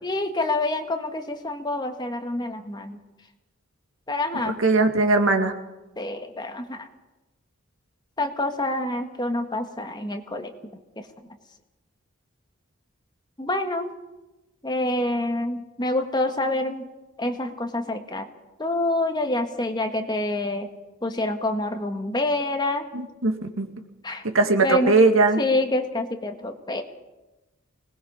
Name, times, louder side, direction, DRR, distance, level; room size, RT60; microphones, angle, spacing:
voice 1, 0.0-3.0 4.1-4.6 6.0-6.9 8.2-10.5 13.4-13.9 14.6-16.9 17.2-18.2 18.6-20.7 21.0-22.9 24.0-24.2 24.6-24.9 25.4-26.8, left 2 dB, 20° left, 5 dB, 1.5 m, -27 dB
voice 2, 4.5-5.5 22.9-23.7 24.2-25.4, right 3 dB, 75° right, 5 dB, 2.2 m, -20 dB
24.5 x 19.5 x 5.6 m, 1.1 s
head